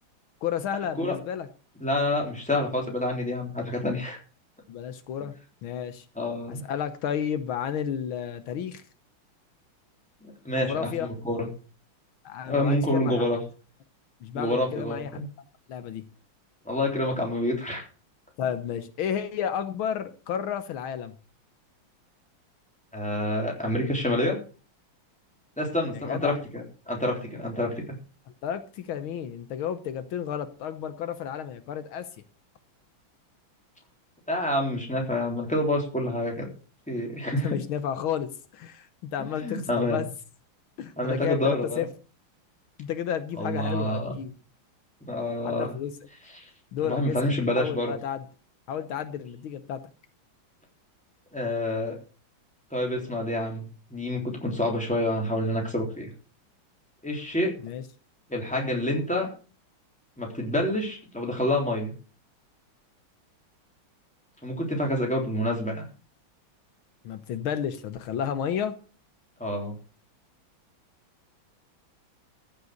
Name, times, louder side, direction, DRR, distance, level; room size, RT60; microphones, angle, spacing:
voice 1, 0.4-1.5 4.7-5.3 5.6-6.1 6.5-8.8 10.5-11.1 12.3-13.3 14.2-15.1 15.7-16.0 18.4-21.1 25.9-26.4 28.4-32.1 37.4-40.1 40.8-41.9 42.8-44.3 45.5-45.9 46.7-48.2 48.7-49.8 57.6-57.8 67.0-68.7, left 8 dB, 80° left, 1.8 m, -32 dB
voice 2, 1.8-4.2 6.2-6.6 10.4-11.5 12.4-13.4 14.3-15.2 16.7-17.9 22.9-24.4 25.6-27.7 34.3-36.5 36.9-37.6 39.4-40.0 41.0-41.9 43.4-44.1 45.0-45.7 46.3-46.5 46.8-47.9 51.3-52.0 52.7-56.1 57.0-57.5 58.3-59.3 60.2-61.9 64.4-65.8 69.4-69.8, left 1 dB, 5° left, 3.4 m, -27 dB
14.5 x 6.9 x 6.6 m
omnidirectional pair, 2.3 m